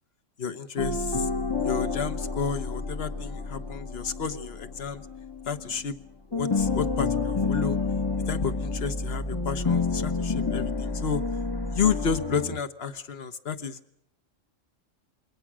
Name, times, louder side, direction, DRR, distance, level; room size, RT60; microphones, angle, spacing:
voice 1, 0.4-1.3 1.6-5.1 5.5-6.0 6.3-7.8 8.3-11.2 11.7-13.8, left 6 dB, 50° left, 10 dB, 1.4 m, -31 dB
sound 1, 0.8-6.0 6.3-12.6, left 4 dB, 20° left, 1.0 m, -29 dB
27.5 x 23.0 x 6.3 m, 0.71 s
omnidirectional pair, 1.3 m